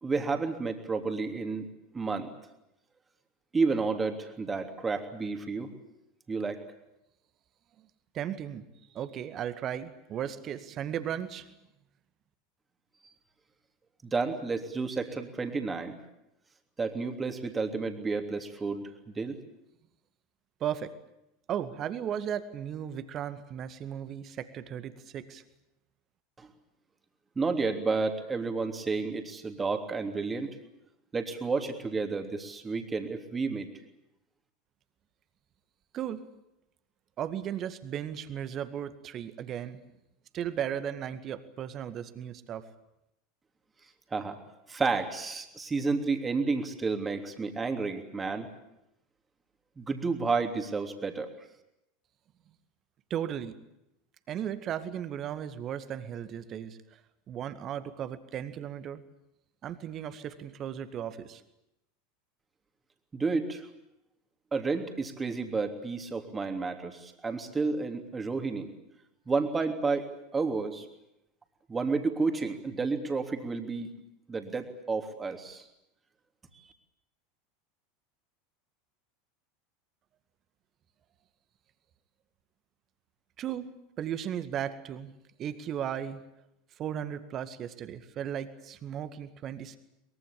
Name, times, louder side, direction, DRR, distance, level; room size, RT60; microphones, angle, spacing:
voice 1, 0.0-1.7 1.9-2.3 3.5-5.7 6.3-6.6 14.0-16.0 16.8-18.8 19.1-19.4 26.4-26.5 27.3-30.6 31.1-33.7 44.1-44.4 44.7-48.5 49.8-51.3 63.1-63.7 64.5-68.7 69.3-70.8 71.7-73.9 74.3-75.7 76.5-76.6, right 4 dB, 15° right, 5 dB, 3.2 m, -31 dB
voice 2, 8.1-8.6 8.9-11.5 20.6-20.9 21.5-25.4 35.9-36.2 37.2-39.8 40.3-42.7 53.1-53.5 54.3-56.8 57.3-59.0 59.6-61.4 83.4-83.7 84.0-85.1 85.4-86.2 86.8-89.8, right 9 dB, 35° right, 12 dB, 2.0 m, -36 dB
23.5 x 22.5 x 8.8 m, 0.85 s
figure-of-eight pair, 80°, 0 cm